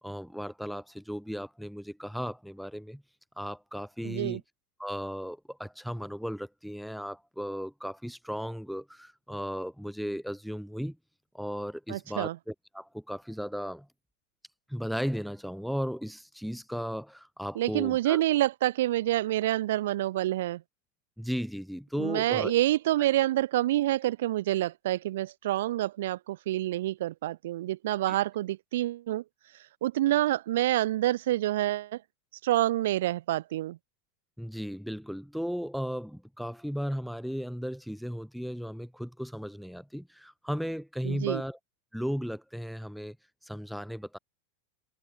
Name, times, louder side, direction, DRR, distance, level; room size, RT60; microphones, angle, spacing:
voice 1, 0.0-3.0 3.4-4.4 4.8-11.0 11.3-13.9 14.7-18.2 21.2-22.5 28.1-28.2 34.4-41.6 41.9-43.2 43.4-44.2, equal, ahead, 2.9 m, -35 dB
voice 2, 4.0-4.4 11.9-12.4 17.5-20.6 22.0-29.2 29.8-32.0 32.4-33.8 41.0-41.4, right 14 dB, 70° right, 1.0 m, -27 dB
supercardioid pair, 165°, 0 cm